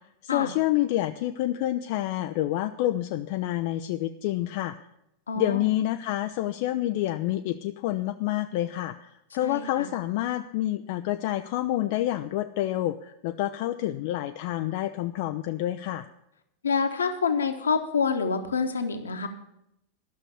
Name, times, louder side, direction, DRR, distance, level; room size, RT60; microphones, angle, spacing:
voice 1, 0.2-4.7 5.4-16.1, left 14 dB, 50° left, 8 dB, 0.4 m, -28 dB
voice 2, 5.3-5.7 9.4-9.9 16.6-19.3, left 5 dB, 70° left, 7 dB, 1.1 m, -27 dB
11.5 x 6.4 x 8.3 m, 0.82 s
figure-of-eight pair, 90°, 0 cm